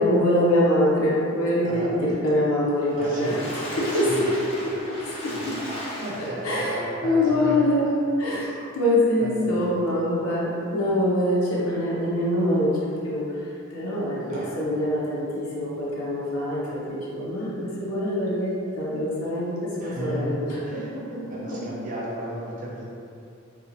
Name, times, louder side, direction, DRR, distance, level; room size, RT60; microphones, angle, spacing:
voice 1, 0.0-3.3 3.8-4.3 4.9-5.0 5.2-5.6 6.4-7.9 8.2-13.3 13.7-21.2 21.5-21.6, left 1 dB, 80° left, -7 dB, 0.6 m, -24 dB
voice 2, 1.6-2.2 3.0-3.5 3.7-4.5 5.3-5.4 6.0-7.6 7.9-8.0 9.2-9.8 14.3-14.6 19.8-20.4 20.6-20.9 21.3-22.9, right 1 dB, 40° right, -5 dB, 0.5 m, -34 dB
Water / Splash splatter, 2.8-6.7 7.2-7.3 7.6-7.7, equal, 30° left, 0.4 m, -35 dB
2.9 x 2.1 x 2.5 m, 2.5 s
head